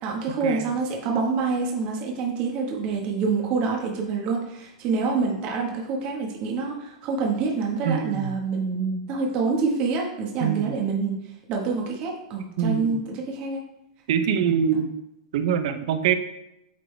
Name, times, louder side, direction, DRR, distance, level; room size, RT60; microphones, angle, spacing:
voice 1, 0.0-11.1 11.5-13.6, right 4 dB, 40° right, 0 dB, 1.4 m, -26 dB
voice 2, 7.8-8.3 10.4-10.7 12.6-13.0 14.1-14.9 15.3-16.1, right 8 dB, 65° right, 9 dB, 0.7 m, -24 dB
8.5 x 3.9 x 3.4 m, 0.85 s
supercardioid pair, 150°, 3 cm